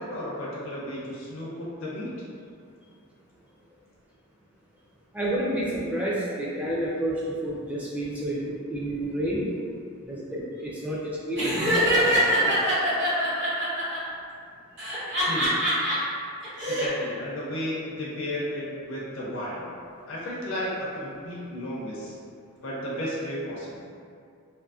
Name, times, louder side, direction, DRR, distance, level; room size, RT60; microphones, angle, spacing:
voice 1, 0.0-2.1 15.3-15.5 16.7-19.7 20.1-22.1 22.6-23.8, left 1 dB, 65° left, -6 dB, 0.4 m, -33 dB
voice 2, 5.1-9.4 10.0-12.5, right 1 dB, 5° right, -7 dB, 0.3 m, -30 dB
Laughter, 11.4-14.0 14.8-15.9 16.4-16.9, equal, 55° right, 0.9 m, -24 dB
2.6 x 2.5 x 2.3 m, 2.4 s
head